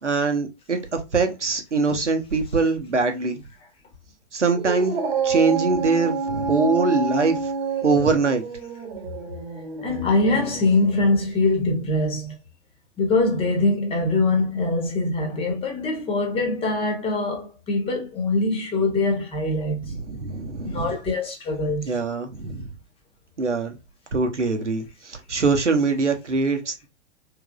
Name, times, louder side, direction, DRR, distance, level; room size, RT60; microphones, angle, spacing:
voice 1, 0.0-3.4 4.3-4.9 5.2-7.4 7.8-8.4 19.9-20.9 21.8-22.7 23.4-23.8 24.1-26.9, right 4 dB, 85° right, 0.9 m, -23 dB
Dog, 4.5-11.2, right 5 dB, 55° right, 1.1 m, -28 dB
voice 2, 9.8-12.4 13.0-20.0 20.6-21.9, left 2 dB, 15° left, 0.9 m, -23 dB
3.3 x 3.3 x 2.3 m
figure-of-eight pair, 110°, 35 cm